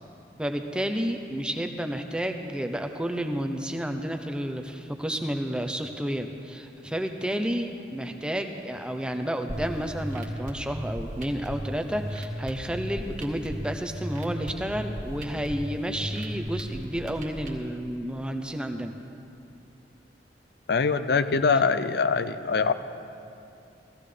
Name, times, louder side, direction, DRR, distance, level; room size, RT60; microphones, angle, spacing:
voice 1, 0.4-18.9, equal, 5° right, 5 dB, 0.6 m, -31 dB
sound 1, 9.5-17.5, equal, 45° right, 1.7 m, -36 dB
voice 2, 20.7-22.7, left 5 dB, 60° left, 11 dB, 0.5 m, -23 dB
16.5 x 15.0 x 3.3 m, 2.7 s
head